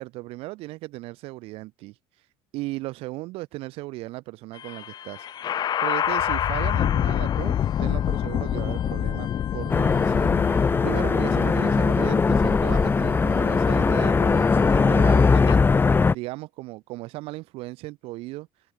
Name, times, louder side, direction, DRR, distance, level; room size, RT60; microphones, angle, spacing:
voice 1, 0.0-1.9 2.5-18.5, right 20 dB, 75° right, 7.8 m, -36 dB
sound 1, 4.5-15.5, left 10 dB, 45° left, 2.8 m, -28 dB
sound 2, 9.7-16.1, left 4 dB, 20° left, 3.0 m, -20 dB
cardioid pair, 115°, 10 cm